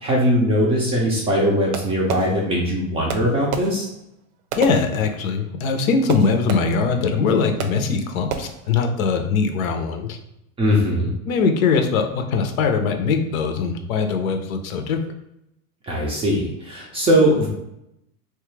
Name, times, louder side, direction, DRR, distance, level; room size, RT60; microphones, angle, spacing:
voice 1, 0.0-3.9 10.6-11.1 15.9-17.5, equal, 15° right, -3 dB, 0.4 m, -20 dB
Fireworks, 1.7-2.8 3.1-5.5 6.1-7.0 7.6-8.0 8.3-8.8, right 7 dB, 80° right, 0.6 m, -32 dB
voice 2, 4.6-10.2 11.3-15.0, left 5 dB, 75° left, 5 dB, 0.7 m, -21 dB
3.1 x 2.3 x 3.1 m, 0.83 s
supercardioid pair, 135°, 42 cm